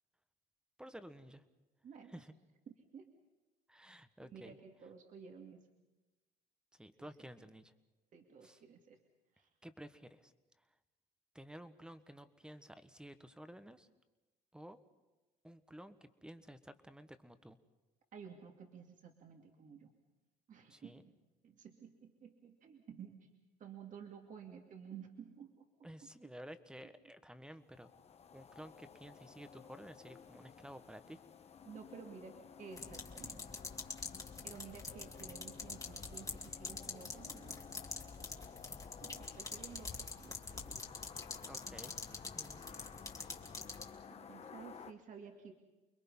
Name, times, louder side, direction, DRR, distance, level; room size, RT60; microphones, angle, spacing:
voice 1, 0.8-1.4 2.1-2.3 3.7-4.6 6.7-7.7 8.4-8.6 9.6-10.6 11.3-13.9 14.5-14.8 15.4-17.6 20.7-21.0 25.8-27.9 28.3-31.2 41.5-41.9 42.3-42.6, equal, 5° right, 11 dB, 1.4 m, -53 dB
voice 2, 1.8-2.1 2.9-3.1 4.2-5.6 7.0-7.1 8.1-9.0 9.3-9.5 18.1-19.9 20.5-21.1 21.4-23.3 23.6-25.6 26.0-26.1 31.6-33.4 34.4-37.9 38.2-38.3 39.0-40.8 44.1-45.5, right 7 dB, 50° right, 3 dB, 2.6 m, -53 dB
sound 1, 27.6-44.9, left 7 dB, 40° left, 1.3 m, -55 dB
sound 2, 32.7-43.9, left 3 dB, 20° left, 2.2 m, -46 dB
29.5 x 21.5 x 5.6 m, 1.1 s
cardioid pair, 110°, 17 cm